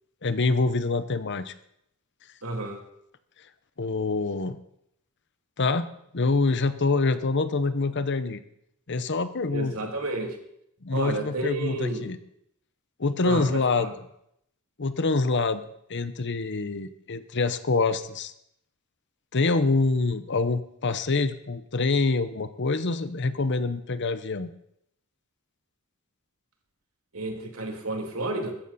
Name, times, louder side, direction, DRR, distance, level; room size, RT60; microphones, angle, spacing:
voice 1, 0.2-1.5 3.8-4.6 5.6-5.9 6.1-8.4 8.9-9.9 10.8-12.2 13.0-14.0 14.8-15.6 15.9-18.3 19.3-24.5, left 3 dB, 55° left, 12 dB, 0.9 m, -26 dB
voice 2, 2.4-2.8 9.5-10.4 10.9-12.1 13.2-13.5 13.8-13.9 27.1-28.5, right 2 dB, 85° right, 2 dB, 2.9 m, -31 dB
15.5 x 14.0 x 4.2 m, 0.75 s
head